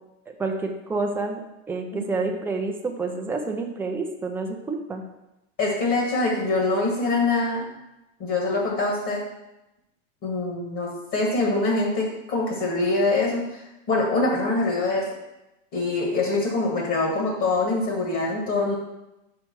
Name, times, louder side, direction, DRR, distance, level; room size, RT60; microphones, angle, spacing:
voice 1, 0.3-1.4 1.7-5.0, right 3 dB, 5° right, 2 dB, 0.6 m, -28 dB
voice 2, 5.6-7.6 8.2-9.2 10.2-15.1 15.7-18.8, left 2 dB, 35° left, -2 dB, 1.9 m, -24 dB
5.1 x 4.8 x 6.1 m, 0.93 s
supercardioid pair, 135°, 38 cm